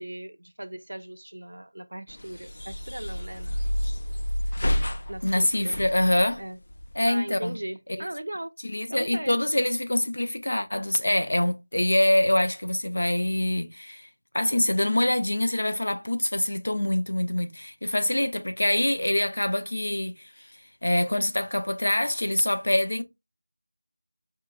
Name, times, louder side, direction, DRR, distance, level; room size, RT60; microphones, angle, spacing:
voice 1, 0.0-3.7 5.1-5.8 6.4-6.6 7.1-8.5 8.9-9.7, right 1 dB, 70° right, 0.5 m, -38 dB
sound 1, 2.1-7.1, equal, 50° left, 0.4 m, -30 dB
voice 2, 5.2-6.4 7.0-7.6 8.6-14.1 14.3-20.5 20.8-23.0, left 1 dB, 70° left, 0.7 m, -25 dB
4.4 x 2.8 x 2.2 m
figure-of-eight pair, 175°, 0 cm